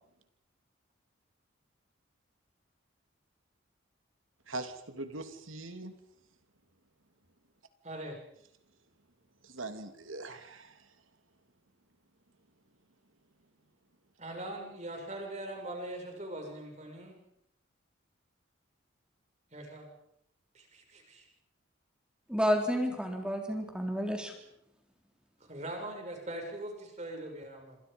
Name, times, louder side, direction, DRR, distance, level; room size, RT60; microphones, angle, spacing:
voice 1, 4.5-5.9 9.4-10.8, right 2 dB, 80° right, 8 dB, 3.0 m, -41 dB
voice 2, 7.8-8.2 14.2-17.2 19.5-19.9 20.5-21.3 25.4-27.8, right 1 dB, 35° right, 2 dB, 7.1 m, -41 dB
voice 3, 22.3-24.3, equal, 5° right, 3 dB, 3.5 m, -30 dB
28.0 x 26.5 x 5.5 m, 0.72 s
head